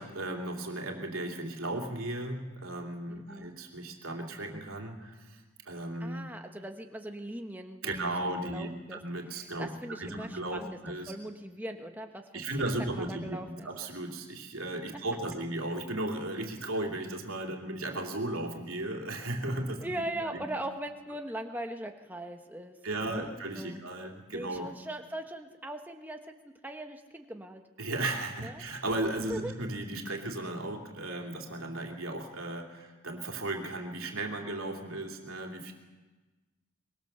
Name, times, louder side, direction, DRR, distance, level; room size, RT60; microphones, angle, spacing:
voice 1, 0.0-5.4 5.7-6.3 7.8-9.7 10.0-11.1 12.3-20.0 20.3-20.4 22.8-24.7 27.8-35.7, right 2 dB, 80° right, 2 dB, 2.9 m, -35 dB
voice 2, 3.1-3.5 6.0-9.0 9.3-10.8 11.1-12.4 13.0-13.7 19.8-23.8 24.3-26.3 26.6-27.6 28.4-28.6 29.3-29.5, right 1 dB, 10° right, 4 dB, 1.3 m, -40 dB
24.0 x 22.0 x 6.8 m, 1.2 s
head